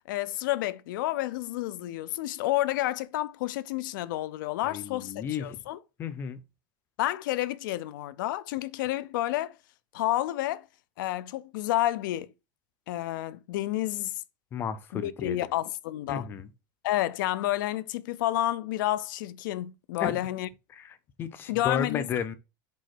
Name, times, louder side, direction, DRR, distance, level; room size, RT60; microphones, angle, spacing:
voice 1, 0.1-5.8 7.0-9.6 9.9-10.7 11.0-12.3 12.9-14.2 14.9-16.3 16.8-20.5 21.5-22.1, left 15 dB, 75° left, 0.6 m, -30 dB
voice 2, 4.7-5.6 6.0-6.4 14.5-15.4 16.1-16.5 20.0-20.2 20.7-22.4, left 7 dB, 20° left, 0.6 m, -33 dB
5.3 x 4.4 x 5.9 m
supercardioid pair, 180°, 11 cm